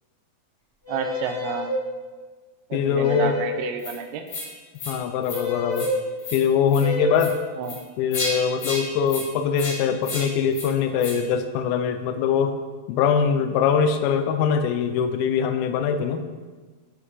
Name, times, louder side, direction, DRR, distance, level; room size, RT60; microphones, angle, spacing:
sound 1, 0.8-1.8 3.0-3.6 5.3-5.9 6.8-7.4, left 2 dB, 5° right, 2.0 m, -29 dB
voice 1, 0.9-1.7 2.7-4.2 7.6-7.8 10.9-11.0, right 6 dB, 85° right, 6 dB, 2.8 m, -30 dB
voice 2, 2.7-3.4 4.9-5.9 6.3-7.4 8.0-12.6 12.9-16.2, left 7 dB, 80° left, 8 dB, 2.4 m, -22 dB
sound 2, 3.8-3.9 4.3-4.5 4.8-5.0 5.2-5.4 5.7-5.9 6.2-6.4 6.7-6.8 7.2-7.3 7.6-7.8 8.1-8.3 8.6-8.8 9.1-9.2 9.6-9.8 10.0-10.2 10.5-10.7 11.0-11.2, left 2 dB, 55° left, 3.4 m, -32 dB
10.5 x 6.2 x 5.5 m, 1.4 s
omnidirectional pair, 4.5 m